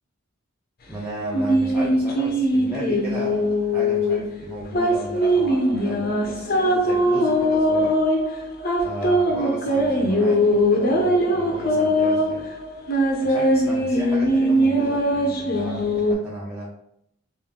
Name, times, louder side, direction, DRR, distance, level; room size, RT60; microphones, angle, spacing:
voice 1, 0.9-8.0 8.8-12.5 13.2-16.7, equal, 5° right, -8 dB, 0.6 m, -34 dB
sound 1, 1.3-16.1, equal, 45° left, 0.6 m, -21 dB
3.6 x 2.5 x 3.6 m, 0.75 s
head